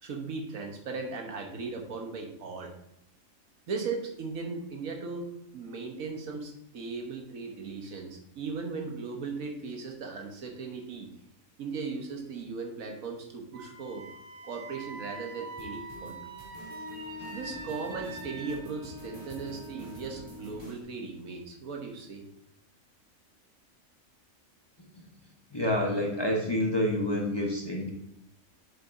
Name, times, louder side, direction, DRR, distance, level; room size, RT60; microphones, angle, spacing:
voice 1, 0.0-2.7 3.7-5.3 5.5-11.1 11.6-14.1 14.4-16.2 17.3-22.2, right 4 dB, 80° right, 2 dB, 1.5 m, -37 dB
Wind instrument woodwind instrument, 13.5-18.6, right 3 dB, 60° right, 1.5 m, -44 dB
sound 1, 15.6-20.8, right 2 dB, 20° right, 2.4 m, -48 dB
Wind instrument woodwind instrument 2, 16.7-20.8, left 4 dB, 85° left, 1.3 m, -47 dB
voice 2, 25.5-27.9, left 1 dB, 20° left, -1 dB, 0.9 m, -28 dB
7.5 x 7.1 x 2.7 m, 0.81 s
omnidirectional pair, 1.5 m